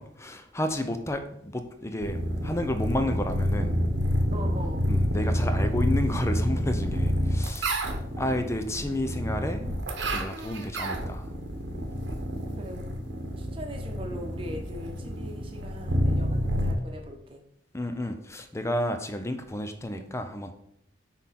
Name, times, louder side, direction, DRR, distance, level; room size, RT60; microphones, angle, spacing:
voice 1, 0.0-3.7 4.9-7.7 8.2-11.3 17.7-20.5, left 1 dB, 15° left, 7 dB, 0.6 m, -31 dB
sound 1, 2.0-16.7, equal, 70° right, 1.1 m, -28 dB
voice 2, 4.3-4.9 12.6-12.9 13.4-17.4 19.9-20.1, equal, 30° right, 1 dB, 1.1 m, -41 dB
6.1 x 3.8 x 5.8 m, 0.71 s
head